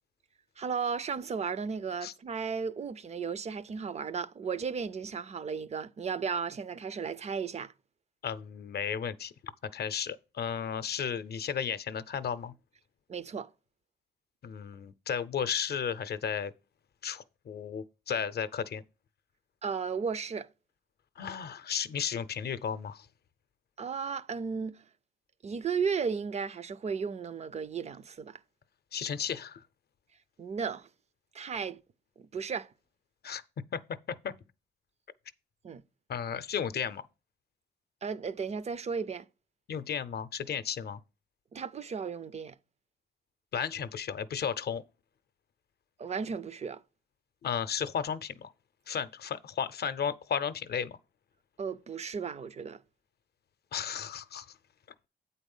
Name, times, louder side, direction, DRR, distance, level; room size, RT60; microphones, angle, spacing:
voice 1, 0.6-7.7 13.1-13.5 19.6-20.5 23.8-24.8 25.4-28.4 30.4-30.9 31.3-31.8 32.2-32.7 35.6-35.8 38.0-39.2 41.5-42.6 46.0-46.8 51.6-52.8, right 6 dB, 40° right, 0.4 m, -34 dB
voice 2, 8.2-9.3 9.7-12.5 14.4-16.5 17.0-18.8 21.2-23.1 28.9-29.6 33.2-33.4 33.7-33.8 34.1-34.3 36.1-37.0 39.7-41.0 43.5-44.8 47.4-48.5 48.9-51.0 53.7-54.5, left 7 dB, 65° left, 0.6 m, -34 dB
8.7 x 4.1 x 5.4 m
wide cardioid pair, 175°, 18 cm